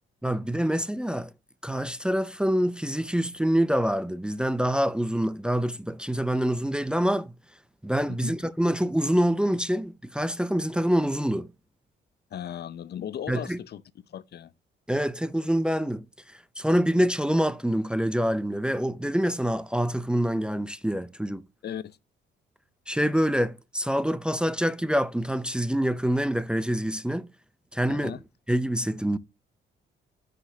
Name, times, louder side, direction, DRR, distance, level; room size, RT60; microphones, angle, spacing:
voice 1, 0.2-1.3 1.6-7.3 7.8-11.5 13.3-13.6 14.9-21.5 22.9-27.3 27.7-28.2 28.5-29.2, equal, 5° right, 0.5 m, -26 dB
voice 2, 12.3-13.8 14.1-14.5 21.6-22.0 27.9-28.2, left 9 dB, 55° left, 0.6 m, -37 dB
11.5 x 5.1 x 2.8 m
cardioid pair, 90°, 20 cm